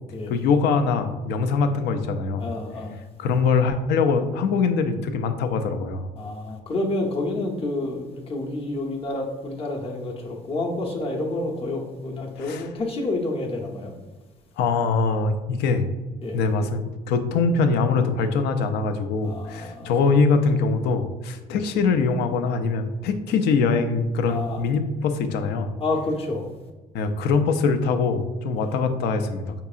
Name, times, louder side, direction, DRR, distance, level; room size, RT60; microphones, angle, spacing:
voice 1, 0.3-2.5 3.2-6.0 12.4-12.7 14.6-15.9 16.3-25.7 26.9-29.5, left 4 dB, 80° left, 7 dB, 0.4 m, -23 dB
voice 2, 2.4-3.0 6.2-13.9 16.2-16.4 19.2-19.9 21.5-21.7 24.3-24.6 25.8-26.5 28.6-28.7, left 2 dB, 35° left, 0 dB, 0.7 m, -29 dB
4.5 x 2.8 x 2.4 m, 1.2 s
cardioid pair, 110°, 17 cm